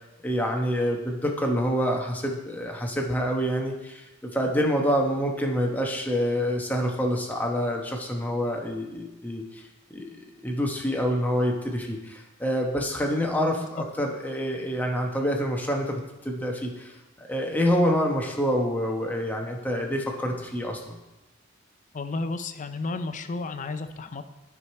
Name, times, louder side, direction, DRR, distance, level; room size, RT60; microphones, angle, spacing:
voice 1, 0.2-9.4 9.9-10.1 10.4-16.9 17.3-21.0, equal, 10° left, 1 dB, 1.0 m, -27 dB
voice 2, 21.9-24.2, left 3 dB, 35° left, 9 dB, 0.5 m, -32 dB
10.0 x 4.9 x 4.3 m, 1.0 s
head